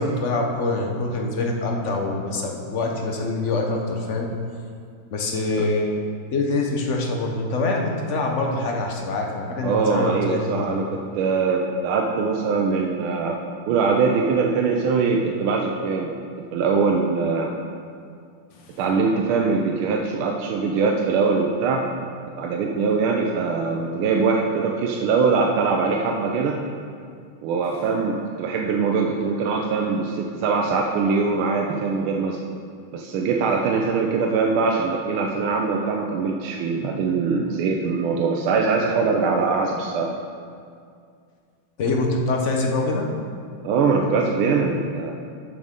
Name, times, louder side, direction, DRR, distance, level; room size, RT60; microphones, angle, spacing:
voice 1, 0.0-4.3 5.1-5.9 6.3-10.8 18.6-18.8 41.8-43.1, left 2 dB, 55° left, 1 dB, 0.8 m, -25 dB
voice 2, 9.6-13.4 13.7-16.1 16.5-17.5 18.8-21.9 22.4-26.6 27.4-32.4 32.9-40.1 43.6-45.1, right 4 dB, 80° right, 0 dB, 1.5 m, -22 dB
12.5 x 6.2 x 3.7 m, 2.3 s
omnidirectional pair, 2.3 m